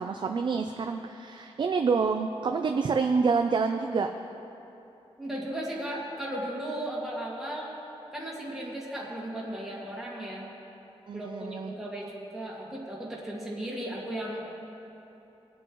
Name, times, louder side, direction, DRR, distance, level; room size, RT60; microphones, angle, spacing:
voice 1, 0.0-4.1 11.1-11.7, right 5 dB, 45° right, 5 dB, 0.4 m, -27 dB
voice 2, 5.2-7.7 8.1-10.5 11.1-14.5, right 1 dB, 5° right, -6 dB, 2.0 m, -36 dB
21.0 x 7.7 x 3.1 m, 3.0 s
wide cardioid pair, 150°, 11 cm